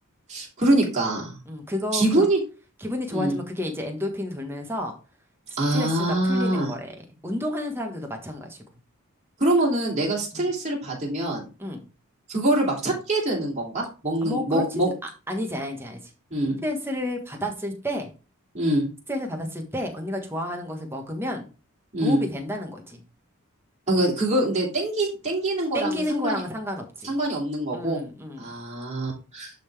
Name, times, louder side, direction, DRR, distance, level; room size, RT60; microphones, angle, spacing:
voice 1, 0.3-1.4 1.9-2.4 3.1-3.4 5.6-6.7 9.4-11.5 12.3-14.9 16.3-16.6 18.5-18.8 21.9-22.2 23.9-26.4 27.0-28.0 28.4-29.5, right 1 dB, 35° right, -2 dB, 3.0 m, -24 dB
voice 2, 1.4-2.2 2.8-4.9 5.5-8.6 10.3-10.5 11.6-11.9 14.2-16.1 16.6-18.1 19.1-21.5 22.0-23.0 25.7-27.2 27.7-28.5, left 1 dB, 10° right, 2 dB, 1.3 m, -31 dB
11.5 x 3.8 x 3.4 m, 0.33 s
head